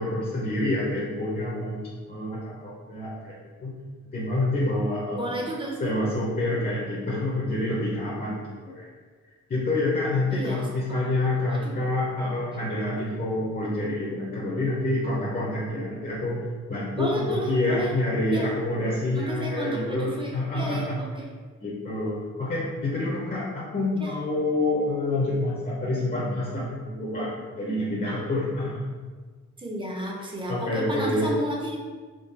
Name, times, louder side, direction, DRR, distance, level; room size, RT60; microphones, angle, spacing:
voice 1, 0.0-3.4 3.6-3.8 4.1-5.4 5.8-8.9 9.5-16.4 16.7-21.0 21.6-28.8 30.5-31.3, left 2 dB, 30° left, -6 dB, 0.6 m, -27 dB
voice 2, 5.1-5.9 10.3-10.7 11.0-11.2 11.5-11.7 16.9-17.9 18.3-18.5 19.1-21.3 24.0-24.1 29.6-31.8, right 1 dB, 15° right, -2 dB, 0.6 m, -32 dB
3.7 x 2.2 x 3.9 m, 1.5 s
wide cardioid pair, 165°, 30 cm